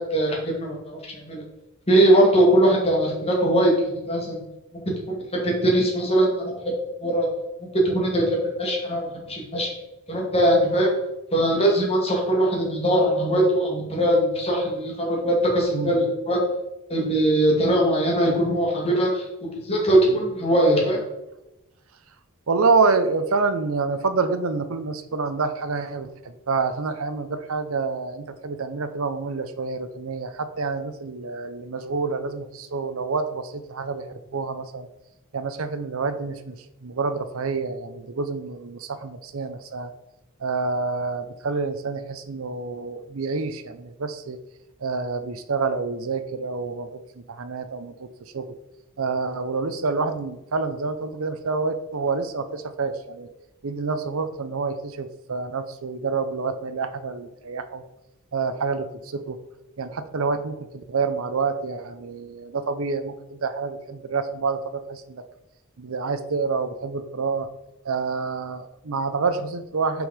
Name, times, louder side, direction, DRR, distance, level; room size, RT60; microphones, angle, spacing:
voice 1, 0.0-1.4 1.9-4.4 5.1-6.5 7.0-7.3 7.8-9.7 10.1-11.0 11.3-16.4 16.9-19.3 19.5-21.0, right 1 dB, 30° left, -2 dB, 2.0 m, -21 dB
voice 2, 15.7-16.1 20.1-20.2 22.5-34.9 35.3-39.9 40.4-44.4 44.8-48.5 49.0-53.3 53.6-57.8 58.3-59.4 59.8-65.2 65.8-67.5 67.8-70.1, right 4 dB, 70° right, 11 dB, 0.6 m, -27 dB
6.1 x 5.4 x 4.9 m, 0.92 s
head